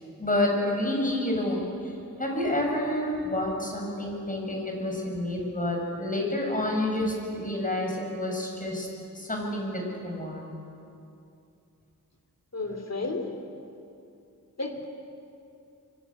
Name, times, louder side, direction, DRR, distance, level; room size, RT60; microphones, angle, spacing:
voice 1, 0.2-1.9 2.2-8.9 9.1-10.5, left 1 dB, 25° left, 0 dB, 6.7 m, -29 dB
voice 2, 12.5-13.3 14.6-14.9, left 3 dB, 50° left, 5 dB, 3.2 m, -32 dB
25.0 x 24.0 x 8.7 m, 2.7 s
wide cardioid pair, 90°, 34 cm